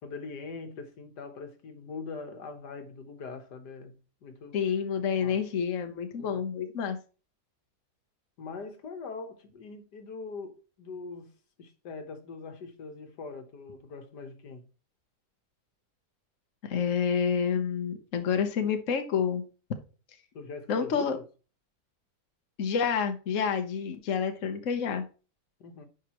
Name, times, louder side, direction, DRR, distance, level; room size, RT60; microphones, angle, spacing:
voice 1, 0.0-4.6 5.1-5.4 6.2-6.4 8.4-11.3 11.6-14.7 20.3-21.1 25.6-25.9, left 4 dB, 80° left, 1.9 m, -42 dB
voice 2, 4.5-7.0 16.6-19.4 20.7-21.2 22.6-25.1, left 7 dB, 55° left, 1.3 m, -28 dB
10.5 x 4.9 x 3.0 m
omnidirectional pair, 1.8 m